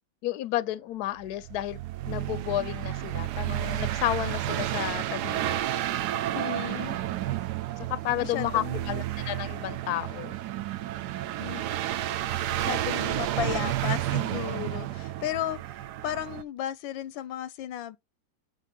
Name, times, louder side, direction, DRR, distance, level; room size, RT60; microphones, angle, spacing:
voice 1, 0.2-1.8 2.0-5.6 7.8-10.3, left 14 dB, 65° left, 1.0 m, -31 dB
sound 1, 1.2-16.4, right 13 dB, 70° right, 1.1 m, -31 dB
voice 2, 6.3-7.0 8.2-9.0 11.4-11.6 12.5-18.0, left 12 dB, 85° left, 1.3 m, -34 dB
8.4 x 3.5 x 5.3 m
omnidirectional pair, 2.1 m